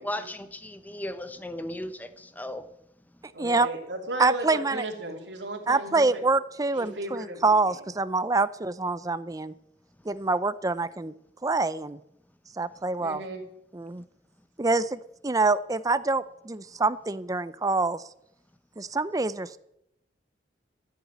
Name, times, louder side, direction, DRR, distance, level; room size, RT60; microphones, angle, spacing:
voice 1, 0.0-2.7, left 1 dB, 10° left, 11 dB, 0.9 m, -36 dB
voice 2, 3.3-6.2 6.7-7.8 13.0-13.4, right 2 dB, 80° right, -1 dB, 2.9 m, -36 dB
voice 3, 4.2-4.9 5.7-9.5 10.1-11.1 11.4-12.0 12.6-13.2 13.7-14.0 14.6-18.0 18.8-19.6, right 3 dB, 20° right, 15 dB, 0.5 m, -26 dB
14.5 x 7.1 x 9.1 m, 0.79 s
head